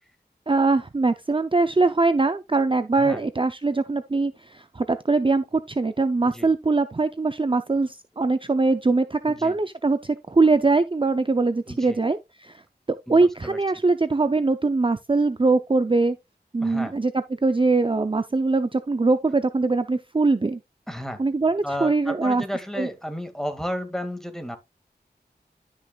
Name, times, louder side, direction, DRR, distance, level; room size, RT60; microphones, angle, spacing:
voice 1, 0.5-12.6 13.1-16.2 16.5-17.1 17.4-20.6 21.2-22.4 22.8-22.9, right 3 dB, 30° right, 0.5 m, -22 dB
voice 2, 9.3-9.6 11.7-12.0 13.1-13.6 16.6-17.0 20.9-21.2 21.6-24.6, equal, ahead, 2.1 m, -33 dB
12.5 x 5.9 x 2.4 m
wide cardioid pair, 50°, 17 cm